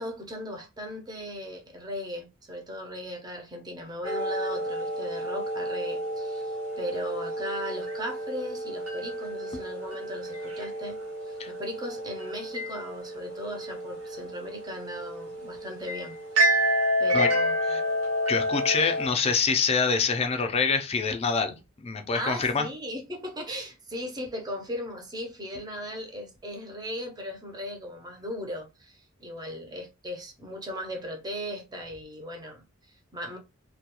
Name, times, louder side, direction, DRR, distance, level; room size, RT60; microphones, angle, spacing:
voice 1, 0.0-11.0 11.3-16.2 16.6-17.9 21.5-21.6 22.1-33.4, equal, 20° right, 0.6 m, -37 dB
sound 1, 4.0-19.1, equal, 80° right, 0.9 m, -30 dB
voice 2, 18.3-22.7, left 5 dB, 30° left, 0.4 m, -26 dB
2.3 x 2.2 x 2.8 m
head